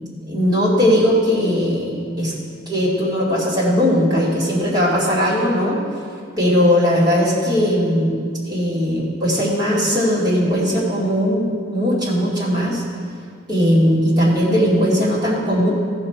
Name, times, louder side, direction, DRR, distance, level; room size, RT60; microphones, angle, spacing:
voice 1, 0.3-2.3 2.7-5.8 6.4-8.2 8.5-12.8 13.5-15.7, equal, 20° right, -7 dB, 2.5 m, -18 dB
14.5 x 5.8 x 4.6 m, 2.1 s
head